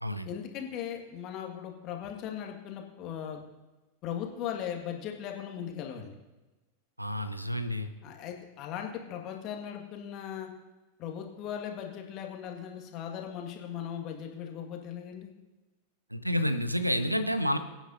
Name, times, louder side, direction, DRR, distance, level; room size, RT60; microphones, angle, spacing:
voice 1, 0.2-3.4 4.0-6.1 8.0-10.5 11.0-15.3, left 9 dB, 40° left, 3 dB, 1.7 m, -38 dB
voice 2, 7.0-7.9 16.1-17.6, equal, 90° right, 11 dB, 0.7 m, -29 dB
23.0 x 9.1 x 2.7 m, 1.1 s
figure-of-eight pair, 90°, 0 cm